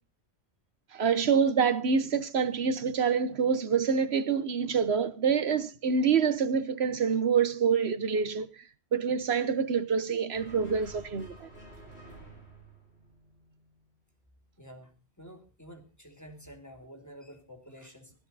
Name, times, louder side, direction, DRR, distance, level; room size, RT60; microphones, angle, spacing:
voice 1, 0.9-8.6 8.9-11.5, right 6 dB, 80° right, 1.3 m, -26 dB
sound 1, 10.3-13.8, right 2 dB, 80° left, 7.7 m, -51 dB
voice 2, 14.6-18.1, equal, 15° left, 3.2 m, -49 dB
16.0 x 13.5 x 4.1 m
omnidirectional pair, 1.1 m